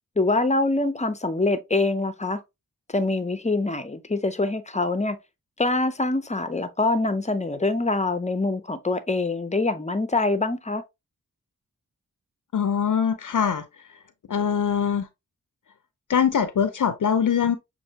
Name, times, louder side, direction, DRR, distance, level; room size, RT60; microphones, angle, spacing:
voice 1, 0.2-2.4 2.9-5.2 5.6-10.8, left 2 dB, 20° left, 0.6 m, -24 dB
voice 2, 12.5-13.6 14.3-15.1 16.1-17.6, left 7 dB, 60° left, 0.6 m, -22 dB
6.5 x 2.6 x 2.8 m
wide cardioid pair, 75°, 35 cm